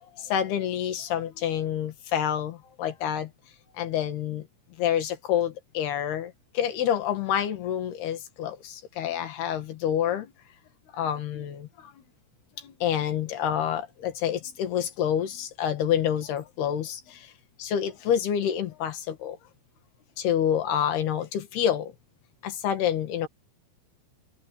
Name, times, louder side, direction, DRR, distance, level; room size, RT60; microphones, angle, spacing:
voice 1, 0.2-3.3 3.8-4.5 4.8-10.3 10.9-11.9 12.6-17.3 17.6-19.4 20.2-21.9 22.4-23.3, left 9 dB, 70° left, 3.9 m, -28 dB
omnidirectional pair, 4.9 m